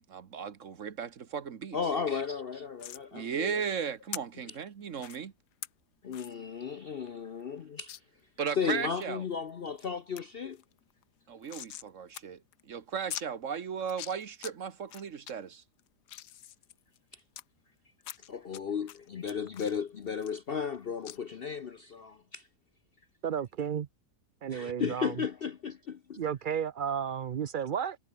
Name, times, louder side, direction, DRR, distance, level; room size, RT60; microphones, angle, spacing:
voice 1, 0.0-1.8 3.1-5.3 8.4-9.2 11.3-15.6, right 7 dB, 55° right, 1.5 m, -36 dB
voice 2, 1.7-3.7 6.0-7.9 8.6-10.6 17.1-17.2 18.3-22.5 24.5-26.2, left 6 dB, 50° left, 0.7 m, -35 dB
sound 1, 2.8-3.0 4.1-4.2 5.0-5.2 5.6-5.7 6.1-6.3 6.7-6.8 7.1-7.2 7.9-8.0 8.5-9.1 9.5-9.9 10.2-10.3 10.5-11.9 12.1-12.2 12.5-12.6 13.1-13.3 13.8-14.5 14.9-15.3 15.8-17.4 18.0-18.6 18.9-20.8 21.1-21.2, left 12 dB, 90° left, 1.5 m, -43 dB
voice 3, 23.2-23.9 24.4-25.2 26.2-28.0, right 8 dB, 80° right, 0.4 m, -33 dB
omnidirectional pair, 1.7 m